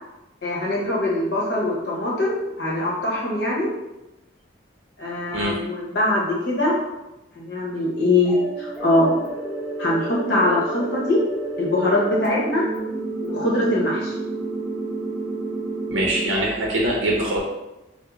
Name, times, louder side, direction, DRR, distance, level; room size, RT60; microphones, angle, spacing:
voice 1, 0.4-3.7 5.0-6.7 7.4-9.1 9.8-11.2 11.6-12.6 13.2-14.1, left 1 dB, 60° left, -4 dB, 0.9 m, -22 dB
sound 1, 8.2-16.2, right 2 dB, 5° right, 0.6 m, -30 dB
voice 2, 15.9-17.4, right 1 dB, 75° right, -3 dB, 0.6 m, -23 dB
3.5 x 2.0 x 3.0 m, 0.99 s
head